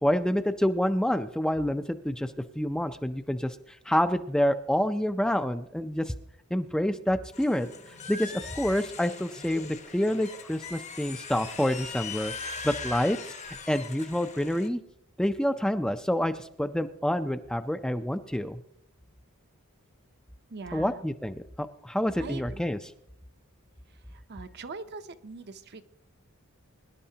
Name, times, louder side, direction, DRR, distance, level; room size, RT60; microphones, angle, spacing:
voice 1, 0.0-6.1 6.5-7.7 8.1-13.2 13.4-14.8 15.2-18.6 20.7-22.8, equal, 5° left, 8 dB, 0.4 m, -28 dB
sound 1, 7.3-14.7, left 5 dB, 30° left, 0.8 m, -40 dB
voice 2, 20.5-21.0 22.2-22.6 24.1-25.9, right 4 dB, 50° right, 10 dB, 0.7 m, -42 dB
23.0 x 11.0 x 2.8 m, 0.74 s
head